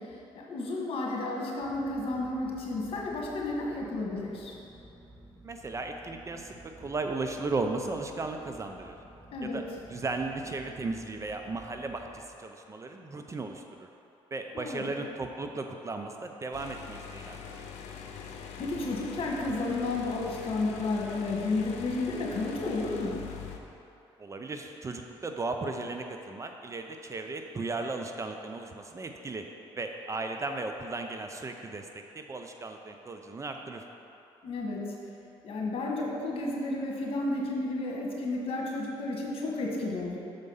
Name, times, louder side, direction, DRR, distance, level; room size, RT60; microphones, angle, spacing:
voice 1, 0.3-4.5 9.3-9.6 14.5-15.0 18.6-23.3 34.4-34.9 35.4-40.2, left 2 dB, 55° left, -2 dB, 1.4 m, -32 dB
sound 1, 1.6-12.2, right 1 dB, 10° right, 1.5 m, -52 dB
voice 2, 5.4-9.0 9.4-9.6 9.9-13.9 14.3-17.6 24.2-29.5 29.8-33.8, right 3 dB, 30° right, 4 dB, 0.5 m, -36 dB
sound 2, 16.5-23.6, left 7 dB, 80° left, 0.6 m, -43 dB
6.5 x 4.6 x 5.5 m, 2.8 s
cardioid pair, 90°, 11 cm